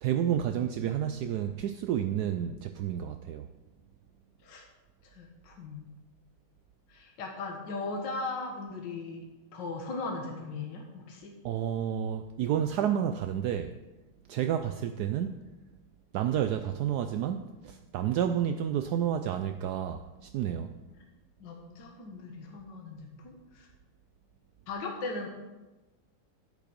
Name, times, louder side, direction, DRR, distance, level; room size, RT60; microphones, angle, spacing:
voice 1, 0.0-3.5 11.4-13.7 14.3-15.4 16.1-20.7, right 9 dB, 75° right, 8 dB, 0.9 m, -30 dB
voice 2, 5.0-5.9 6.9-9.2 9.5-11.3 21.0-21.1 21.4-23.7 24.7-25.3, left 3 dB, 60° left, 1 dB, 2.0 m, -38 dB
11.0 x 8.6 x 5.1 m, 1.1 s
omnidirectional pair, 2.2 m